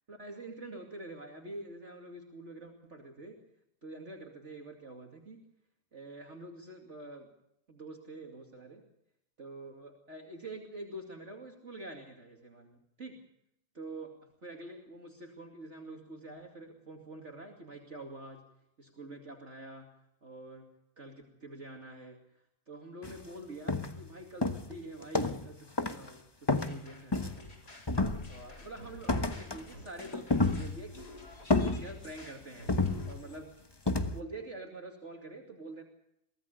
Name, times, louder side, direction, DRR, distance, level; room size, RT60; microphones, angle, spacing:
voice 1, 0.1-3.4 3.8-5.5 5.9-7.3 7.7-8.8 9.4-13.2 13.8-14.1 14.4-18.4 18.8-19.9 20.2-20.7 21.0-22.2 22.7-27.5 28.3-31.1 31.6-32.7 33.1-35.8, right 2 dB, 45° right, 2 dB, 2.8 m, -46 dB
sound 1, 23.0-23.2 23.7-24.1 24.4-25.5 25.8-26.1 26.5-27.5 27.9-28.6 29.1-29.7 30.0-31.0 31.5-32.2 32.7-33.4 33.9-34.2, left 2 dB, 15° left, 1.1 m, -30 dB
sound 2, 26.6-33.1, left 1 dB, 80° left, 4.4 m, -51 dB
23.5 x 17.5 x 6.7 m, 0.79 s
omnidirectional pair, 1.7 m